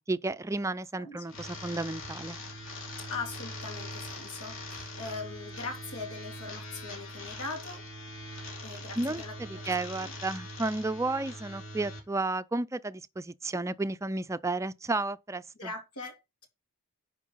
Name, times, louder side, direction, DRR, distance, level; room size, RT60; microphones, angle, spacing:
voice 1, 0.0-2.4 9.0-15.7, right 2 dB, 15° right, 0.4 m, -32 dB
sound 1, 1.3-12.0, left 1 dB, 60° left, 3.5 m, -42 dB
voice 2, 3.0-7.9 8.6-9.7 10.0-10.1 11.1-11.2 15.6-16.5, left 4 dB, 80° left, 3.0 m, -41 dB
10.0 x 4.7 x 5.5 m
head